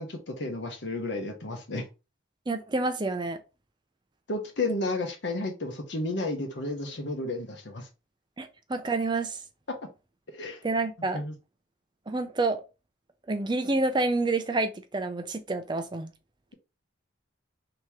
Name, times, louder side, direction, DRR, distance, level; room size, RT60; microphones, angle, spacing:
voice 1, 0.0-1.9 4.3-7.9 10.3-10.6 11.1-11.3, left 2 dB, 60° left, 0.9 m, -32 dB
voice 2, 2.5-3.4 8.4-9.4 10.6-11.2 12.1-12.6 13.3-16.1, right 3 dB, 20° right, 0.5 m, -28 dB
3.5 x 2.9 x 4.4 m
head